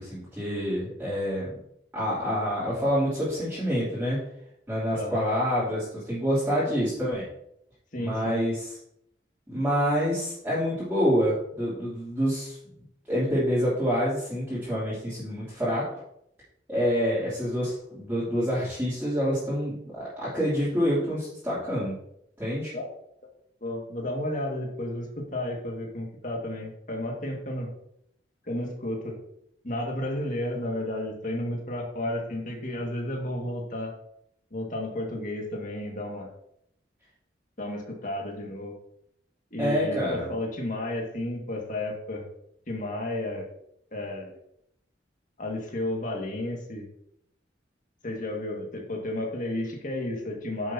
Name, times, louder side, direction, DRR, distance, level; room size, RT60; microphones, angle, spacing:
voice 1, 0.0-1.5 1.9-4.2 4.7-7.2 7.9-8.8 9.5-12.6 13.1-16.0 16.7-22.0 22.4-22.7 39.6-40.3, equal, 10° right, -11 dB, 3.1 m, -27 dB
voice 2, 4.9-5.2 7.9-8.4 22.7-22.9 23.6-27.7 28.4-29.2 29.6-33.9 34.5-36.3 37.6-38.7 39.5-42.3 42.7-43.5 43.9-44.4 45.4-46.9 48.0-50.7, left 1 dB, 45° left, 0 dB, 2.1 m, -32 dB
10.0 x 7.2 x 2.9 m, 0.74 s
head